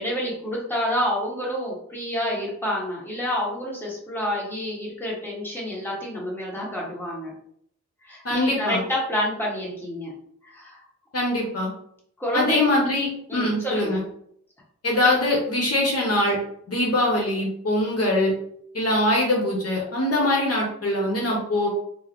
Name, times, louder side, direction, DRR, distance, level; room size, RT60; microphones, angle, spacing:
voice 1, 0.0-7.3 8.0-10.1 10.4-10.8 12.2-12.6 13.3-14.0, equal, 10° left, -5 dB, 1.5 m, -28 dB
voice 2, 8.2-8.8 11.1-11.7 12.3-14.0 14.8-16.4 16.7-18.3 18.7-21.7, left 1 dB, 55° left, -3 dB, 0.9 m, -22 dB
3.9 x 2.0 x 3.0 m, 0.67 s
wide cardioid pair, 85°, 29 cm